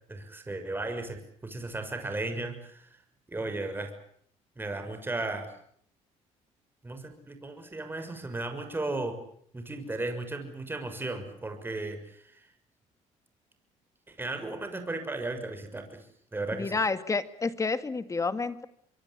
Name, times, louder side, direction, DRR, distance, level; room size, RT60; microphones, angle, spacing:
voice 1, 0.1-2.9 3.3-3.9 4.6-5.5 6.8-9.2 9.5-12.5 14.1-16.1 16.3-16.8, right 2 dB, 15° right, 7 dB, 6.3 m, -35 dB
voice 2, 16.5-18.7, left 4 dB, 25° left, 12 dB, 2.1 m, -29 dB
25.0 x 23.5 x 8.3 m, 0.65 s
cardioid pair, 95°, 13 cm